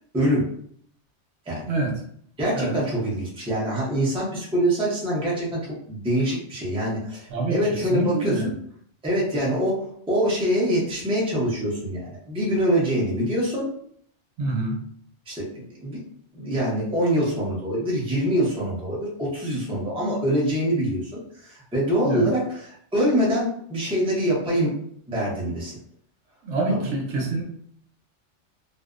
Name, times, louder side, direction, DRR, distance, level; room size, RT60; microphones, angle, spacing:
voice 1, 0.1-0.5 1.5-1.7 2.4-5.6 5.9-8.4 9.0-13.7 15.3-16.0 16.3-24.7 25.1-25.8 26.7-26.9, equal, 5° right, -5 dB, 0.5 m, -24 dB
voice 2, 7.9-8.5 14.4-14.8 22.0-22.3 26.4-27.4, right 2 dB, 75° right, 0 dB, 0.9 m, -25 dB
2.5 x 2.0 x 2.4 m, 0.65 s
omnidirectional pair, 1.2 m